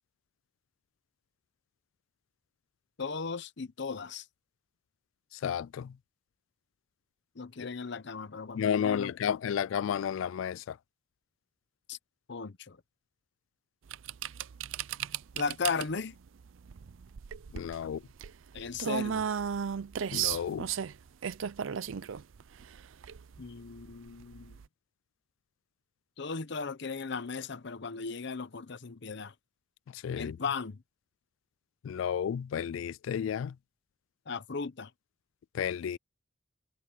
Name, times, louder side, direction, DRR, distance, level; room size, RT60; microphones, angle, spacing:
voice 1, 3.0-4.2 7.4-9.1 11.9-12.0 12.3-12.8 15.4-16.1 18.5-19.3 23.4-24.6 26.2-29.3 30.2-30.8 34.3-34.9, left 5 dB, 60° left, 0.7 m, -36 dB
voice 2, 5.4-5.9 7.6-7.7 8.6-10.7 17.5-18.0 20.1-20.7 30.0-30.4 31.8-33.5 35.5-36.0, left 8 dB, 75° left, 0.3 m, -32 dB
sound 1, 13.9-24.7, right 8 dB, 75° right, 0.5 m, -36 dB
head